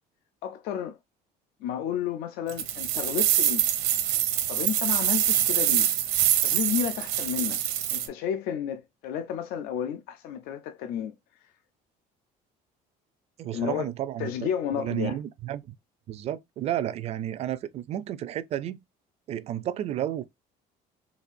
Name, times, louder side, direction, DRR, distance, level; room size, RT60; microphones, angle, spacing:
voice 1, 0.4-1.0 1.6-3.6 4.5-5.9 6.4-7.6 7.9-11.5 13.5-13.9 14.2-15.2, left 9 dB, 70° left, 0.4 m, -32 dB
sound 1, 2.5-8.1, right 11 dB, 80° right, 0.7 m, -25 dB
voice 2, 13.4-14.3 14.7-15.6 16.1-18.8 19.3-20.2, right 11 dB, 40° right, 0.4 m, -31 dB
4.1 x 2.5 x 2.5 m
cardioid pair, 145°, 16 cm